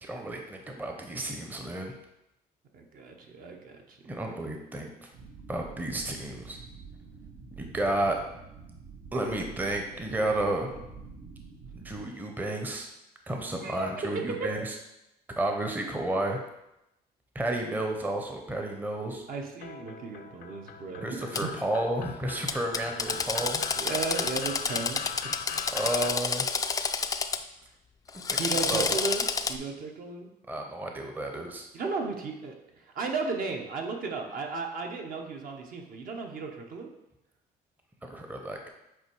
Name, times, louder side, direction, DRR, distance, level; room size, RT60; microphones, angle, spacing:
voice 1, 0.0-1.9 4.0-5.1 5.5-6.6 7.6-8.2 9.1-10.7 11.7-12.9 13.3-14.8 15.4-16.4 17.3-19.2 21.0-23.6 25.7-26.5 28.3-29.0 30.5-31.7 38.0-38.7, right 1 dB, 10° right, 2 dB, 0.7 m, -32 dB
voice 2, 2.7-4.3 13.6-14.5 19.3-21.5 23.7-25.4 28.4-30.3 31.7-36.9, right 4 dB, 55° right, 2 dB, 1.0 m, -35 dB
sound 1, 5.1-12.0, right 5 dB, 70° right, 1.5 m, -47 dB
sound 2, 19.6-26.1, left 8 dB, 65° left, 0.6 m, -41 dB
Drill, 21.3-21.4 22.5-27.4 28.1-29.6, left 5 dB, 20° left, 0.3 m, -29 dB
7.9 x 2.6 x 4.6 m, 0.89 s
cardioid pair, 110°, 17 cm